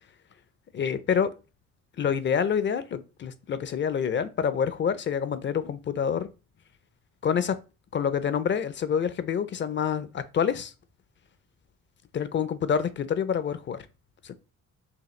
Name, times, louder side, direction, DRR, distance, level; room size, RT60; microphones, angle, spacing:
voice 1, 0.7-1.3 2.0-6.3 7.2-7.6 7.9-10.7 12.1-13.8 14.2-14.3, left 7 dB, 40° left, 0.5 m, -27 dB
5.6 x 2.3 x 3.1 m
cardioid pair, 90°, 30 cm